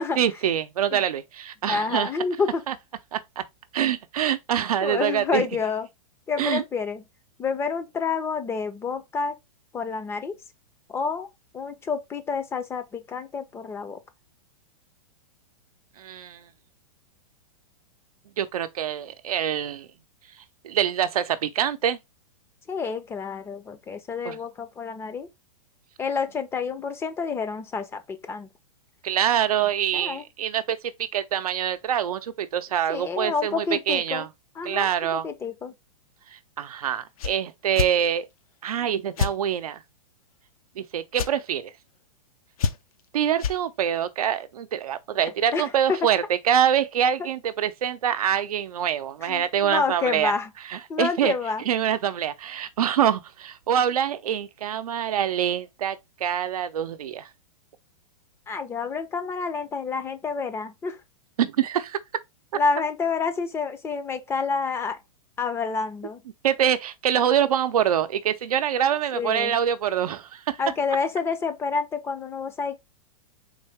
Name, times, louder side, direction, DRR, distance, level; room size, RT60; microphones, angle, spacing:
voice 1, 0.2-2.1 2.7-2.8 3.1-3.4 3.7-5.5 6.4-6.6 16.0-16.4 18.4-19.9 20.6-22.0 24.2-24.4 29.0-34.3 34.6-35.2 36.3-38.3 38.6-39.8 40.8-41.7 43.1-50.3 50.7-51.3 51.7-57.3 61.4-62.0 66.4-70.6, right 9 dB, 85° right, 0.6 m, -25 dB
voice 2, 1.6-2.6 4.8-5.9 6.3-7.0 7.4-9.3 9.7-10.3 10.9-11.3 11.5-14.0 22.7-25.3 26.0-28.5 29.9-30.2 32.9-34.3 34.6-35.7 45.5-46.0 49.2-50.5 50.9-51.6 58.5-61.0 62.5-65.0 65.4-66.2 69.1-69.6 70.6-72.8, left 5 dB, 15° left, 0.5 m, -28 dB
sound 1, 37.2-37.3 37.7-37.9 39.2-39.3 41.1-41.3 42.6-43.0 43.4-43.6, left 6 dB, 75° left, 0.6 m, -26 dB
3.9 x 2.7 x 3.2 m
hypercardioid pair, 135°, 18 cm